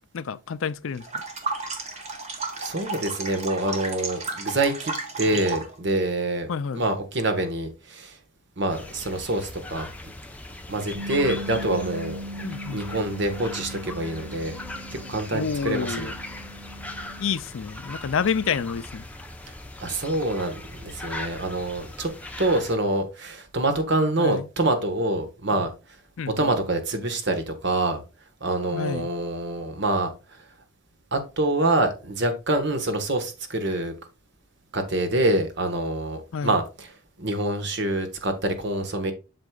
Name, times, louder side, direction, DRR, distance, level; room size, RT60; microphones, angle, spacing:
voice 1, 0.1-1.2 6.5-6.8 12.4-12.8 15.3-16.1 17.2-19.1 24.2-24.5 26.2-26.5 28.7-29.1 36.3-36.6, left 6 dB, 65° left, 0.4 m, -29 dB
sound 1, 1.0-5.7, right 3 dB, 30° right, 1.3 m, -33 dB
voice 2, 2.6-8.2 8.6-9.9 10.7-12.2 12.7-14.6 14.9-16.1 19.8-22.1 22.4-25.7 26.3-28.0 28.4-30.1 31.1-33.9 34.7-36.9 37.2-39.1, right 2 dB, 55° right, 1.3 m, -26 dB
sound 2, 8.7-22.8, left 2 dB, 5° left, 0.7 m, -39 dB
Bass guitar, 10.9-17.2, equal, 90° right, 1.4 m, -39 dB
7.8 x 6.4 x 2.3 m
head